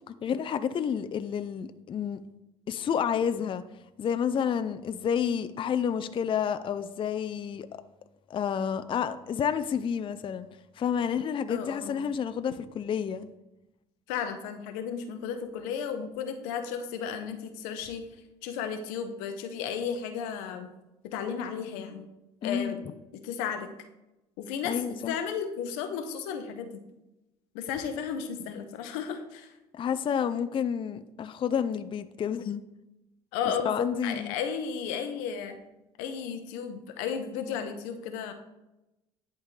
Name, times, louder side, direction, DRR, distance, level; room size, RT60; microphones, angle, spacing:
voice 1, 0.1-2.2 2.7-3.6 4.0-7.7 8.3-10.5 10.8-13.3 22.4-22.9 24.6-25.1 29.7-32.6 33.6-34.3, left 8 dB, 35° left, 10 dB, 0.4 m, -30 dB
voice 2, 11.5-12.0 14.1-18.0 18.4-20.7 21.1-22.1 22.4-22.8 23.2-23.7 24.4-26.7 27.5-29.6 33.3-35.6 36.0-38.3, left 7 dB, 90° left, 7 dB, 0.8 m, -34 dB
10.5 x 3.6 x 3.2 m, 0.97 s
supercardioid pair, 80°, 14 cm